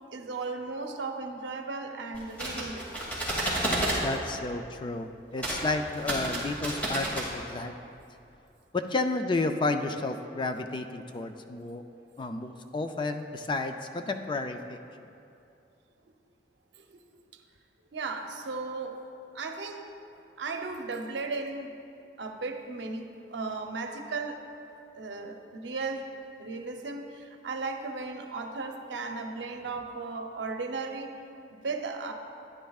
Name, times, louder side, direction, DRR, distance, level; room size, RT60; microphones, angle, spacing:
voice 1, 0.1-2.9 3.2-3.3 11.2-11.3 16.7-17.0 17.3-17.4 17.9-19.0 19.3-19.9 20.1-21.8 22.2-24.4 24.9-26.1 26.4-31.1 31.5-32.1, right 3 dB, 85° right, 5 dB, 0.7 m, -36 dB
sound 1, 2.1-4.0 5.4-5.6 5.9-7.3, right 1 dB, 10° left, 2.3 m, -30 dB
voice 2, 4.0-7.7 8.7-11.8 12.2-14.8, left 3 dB, 25° left, 7 dB, 0.3 m, -31 dB
12.5 x 9.8 x 2.3 m, 2.7 s
head